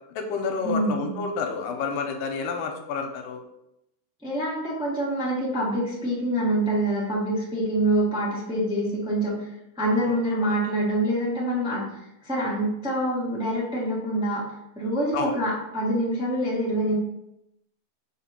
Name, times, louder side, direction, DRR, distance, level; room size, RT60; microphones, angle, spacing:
voice 1, 0.1-3.4 10.1-10.6 15.1-15.4, left 5 dB, 85° left, 4 dB, 2.5 m, -30 dB
voice 2, 0.6-1.1 4.2-9.5 9.8-11.8 12.2-14.4 14.7-16.9, right 1 dB, ahead, -7 dB, 1.4 m, -25 dB
6.8 x 4.2 x 4.4 m, 0.84 s
omnidirectional pair, 3.9 m